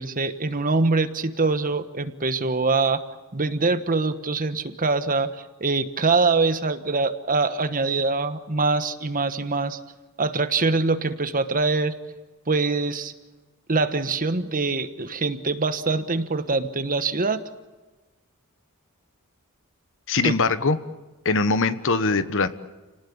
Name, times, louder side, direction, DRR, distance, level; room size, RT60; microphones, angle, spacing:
voice 1, 0.0-3.0 3.3-9.8 10.2-11.9 12.5-13.1 13.7-17.4 20.2-20.4, right 3 dB, 40° right, 10 dB, 1.3 m, -24 dB
voice 2, 20.1-20.8 21.2-22.5, left 4 dB, 60° left, 12 dB, 1.3 m, -22 dB
30.0 x 19.0 x 8.7 m, 1.2 s
head